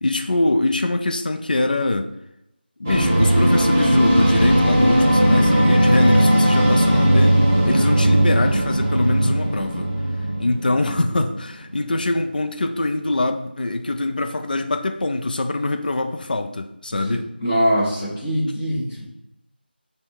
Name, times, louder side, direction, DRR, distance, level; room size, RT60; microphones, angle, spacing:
voice 1, 0.0-2.1 2.8-7.4 7.7-9.9 10.4-17.3, left 2 dB, 55° left, 6 dB, 0.3 m, -23 dB
sound 1, 2.8-11.4, right 1 dB, 15° right, 0.5 m, -17 dB
voice 2, 17.4-19.1, equal, 15° left, -9 dB, 0.8 m, -22 dB
5.6 x 2.2 x 3.3 m, 0.85 s
figure-of-eight pair, 175°, 6 cm